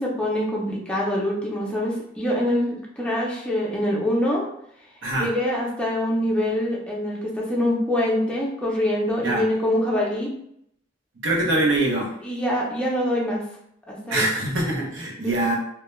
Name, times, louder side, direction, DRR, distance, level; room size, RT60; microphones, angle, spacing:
voice 1, 0.0-4.4 5.1-10.3 12.2-13.4 13.9-14.3 15.2-15.5, left 1 dB, 5° left, -4 dB, 0.5 m, -24 dB
voice 2, 11.2-12.1 14.1-15.5, right 2 dB, 65° right, -2 dB, 0.7 m, -23 dB
2.2 x 2.1 x 3.0 m, 0.73 s
head